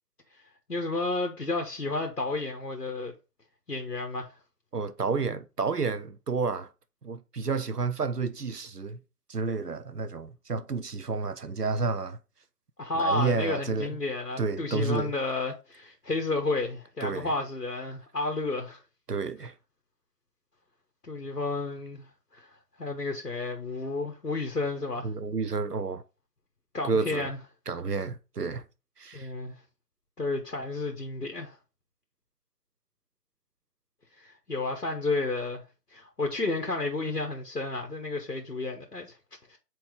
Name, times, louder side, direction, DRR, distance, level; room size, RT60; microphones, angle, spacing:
voice 1, 0.7-3.1 3.7-4.4 12.8-18.8 21.0-22.1 22.3-22.5 22.8-25.1 26.7-27.4 29.1-29.5 30.2-31.6 34.2-35.6 35.9-39.2 39.5-39.6, left 3 dB, 70° left, 1.3 m, -31 dB
voice 2, 4.7-6.7 7.0-9.0 9.3-12.2 12.9-14.0 14.4-15.1 17.0-17.3 19.1-19.5 25.0-26.0 26.8-27.3 27.7-28.6 29.0-29.3, right 4 dB, 70° right, 0.7 m, -30 dB
4.6 x 4.3 x 5.1 m
figure-of-eight pair, 160°, 48 cm